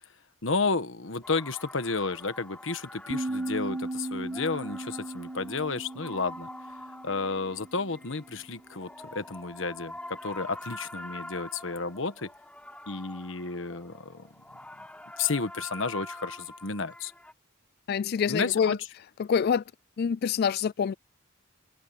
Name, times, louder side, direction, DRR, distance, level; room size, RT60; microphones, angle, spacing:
voice 1, 0.4-6.5 7.0-12.3 12.9-14.3 15.2-17.1 18.3-18.8, left 4 dB, 70° left, 1.4 m, -32 dB
sound 1, 1.1-17.3, left 1 dB, 5° left, 4.7 m, -45 dB
sound 2, 3.1-8.2, right 2 dB, 30° right, 0.5 m, -37 dB
voice 2, 17.9-18.8 19.2-19.6 20.0-20.9, left 7 dB, 50° left, 0.3 m, -26 dB
open air
head